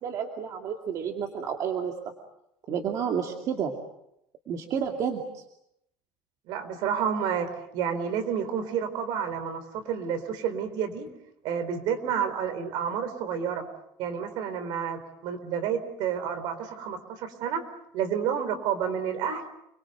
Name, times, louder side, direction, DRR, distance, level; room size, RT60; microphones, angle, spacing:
voice 1, 0.0-1.9 2.7-3.7 4.5-5.4, right 7 dB, 40° right, 2 dB, 2.4 m, -30 dB
voice 2, 6.5-11.1 11.4-13.7 14.0-17.6 17.9-19.4, right 7 dB, 55° right, 9 dB, 4.1 m, -30 dB
29.5 x 22.5 x 8.0 m, 0.81 s
cardioid pair, 170°, 9 cm